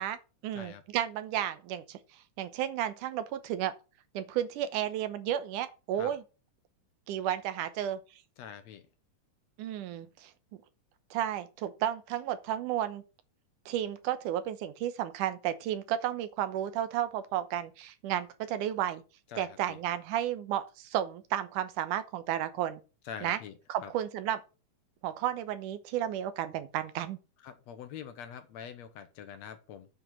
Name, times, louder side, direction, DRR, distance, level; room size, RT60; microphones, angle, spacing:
voice 1, 0.0-2.0 2.4-3.7 4.1-6.2 7.1-8.0 9.6-10.3 11.1-13.0 13.7-19.0 19.4-22.8 23.2-23.4 23.7-24.4 25.0-27.2, right 11 dB, 80° right, 2.4 m, -32 dB
voice 2, 8.4-8.8 19.3-19.8 23.0-23.9 27.4-29.9, left 8 dB, 70° left, 1.9 m, -45 dB
9.0 x 5.2 x 6.2 m
omnidirectional pair, 3.6 m